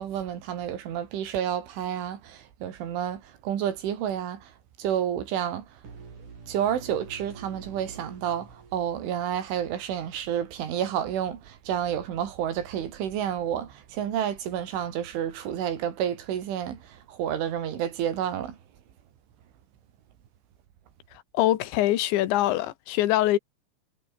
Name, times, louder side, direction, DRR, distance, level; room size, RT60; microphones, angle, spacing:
voice 1, 0.0-5.8 6.5-18.6, right 9 dB, 80° right, 5.3 m, -30 dB
sound 1, 5.8-9.7, right 5 dB, 40° right, 6.0 m, -46 dB
voice 2, 21.3-23.4, left 14 dB, 75° left, 3.8 m, -23 dB
omnidirectional pair, 5.5 m